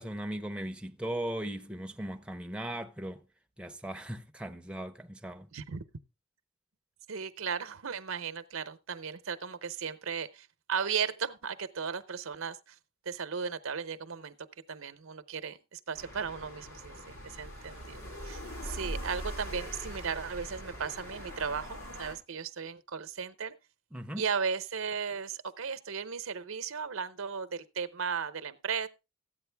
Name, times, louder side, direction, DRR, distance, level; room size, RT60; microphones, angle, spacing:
voice 1, 0.0-3.2 3.6-5.5 23.9-24.2, right 1 dB, 5° right, 0.6 m, -38 dB
voice 2, 5.5-5.8 7.1-12.8 13.0-14.4 14.7-18.0 18.2-23.6 24.2-28.9, right 6 dB, 75° right, 0.8 m, -36 dB
sound 1, 15.9-22.1, equal, 80° left, 3.5 m, -42 dB
14.0 x 8.8 x 3.4 m
head